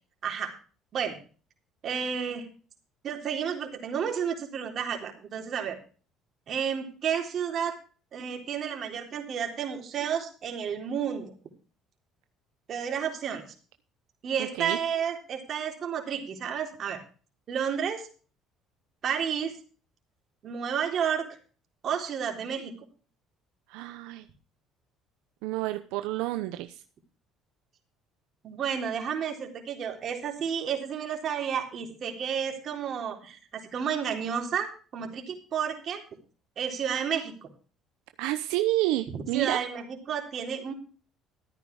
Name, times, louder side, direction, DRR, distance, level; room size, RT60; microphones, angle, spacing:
voice 1, 0.2-0.5 0.9-1.2 1.8-2.5 3.0-5.8 6.5-7.8 8.1-11.3 12.7-13.4 14.2-17.0 17.5-18.0 19.0-19.5 20.4-21.3 21.8-22.7 28.4-36.0 36.6-37.5 39.1-40.7, right 7 dB, 50° right, 3 dB, 3.8 m, -31 dB
voice 2, 14.4-14.8 23.7-24.3 25.4-26.8 38.2-39.6, right 16 dB, 85° right, 9 dB, 0.8 m, -29 dB
14.0 x 9.2 x 4.8 m, 0.38 s
cardioid pair, 100°, 0 cm